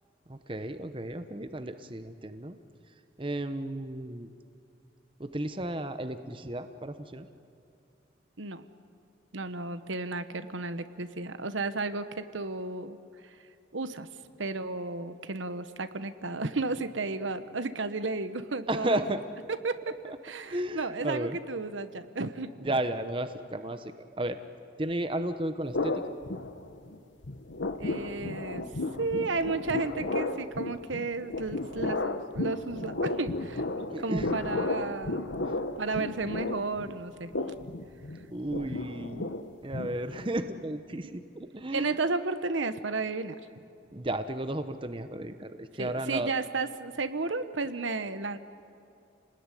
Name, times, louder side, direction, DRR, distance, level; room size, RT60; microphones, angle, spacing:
voice 1, 0.3-2.6 3.2-4.3 5.2-7.3 18.7-19.2 20.1-20.2 20.5-21.4 22.6-23.9 24.2-24.4 24.8-26.2 33.8-34.3 38.3-39.3 39.6-41.9 43.9-46.3, right 1 dB, 25° right, 9 dB, 0.9 m, -33 dB
voice 2, 9.3-13.0 13.2-13.3 13.7-14.1 14.4-19.0 19.6-19.9 20.2-22.5 27.8-28.6 29.0-35.5 35.8-37.3 40.9-41.2 41.7-43.3 45.8-48.4, right 3 dB, 80° right, 10 dB, 1.2 m, -33 dB
sound 1, 25.7-27.0 27.2-40.4, left 2 dB, 75° left, 1.1 m, -34 dB
29.0 x 20.0 x 9.9 m, 2.6 s
head